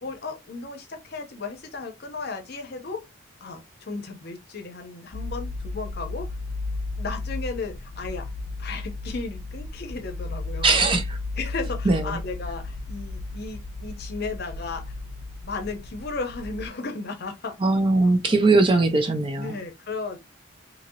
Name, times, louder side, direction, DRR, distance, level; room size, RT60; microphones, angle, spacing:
voice 1, 0.0-3.1 3.4-6.3 7.0-8.3 8.6-10.8 11.4-15.0 15.4-17.6 18.3-18.4 19.4-20.2, left 3 dB, 50° left, 0.7 m, -35 dB
sound 1, 5.1-16.7, left 3 dB, 85° left, 0.5 m, -34 dB
voice 2, 10.6-11.2 11.9-12.2 17.6-19.6, right 3 dB, 25° right, 0.4 m, -20 dB
2.9 x 2.7 x 2.7 m
head